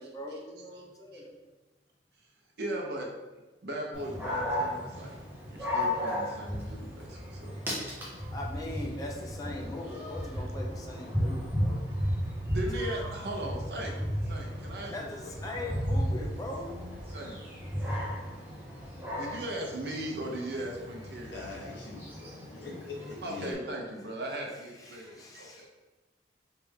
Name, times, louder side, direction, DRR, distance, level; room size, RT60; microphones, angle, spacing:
voice 1, 0.0-1.4 4.7-5.6 8.3-11.8 12.7-13.3 14.9-17.0 24.8-25.7, left 1 dB, 20° left, -1 dB, 0.5 m, -41 dB
voice 2, 2.6-3.1 3.6-5.1 5.5-7.5 7.8-8.1 12.5-14.0 14.2-15.3 15.6-15.7 17.1-17.4 19.1-21.6 23.2-25.7, right 1 dB, 65° right, 0 dB, 0.7 m, -38 dB
Dog, 3.9-23.5, equal, 10° right, 0.9 m, -35 dB
voice 3, 21.3-23.6, left 3 dB, 75° left, -3 dB, 1.1 m, -42 dB
3.3 x 3.3 x 3.5 m, 1.2 s
head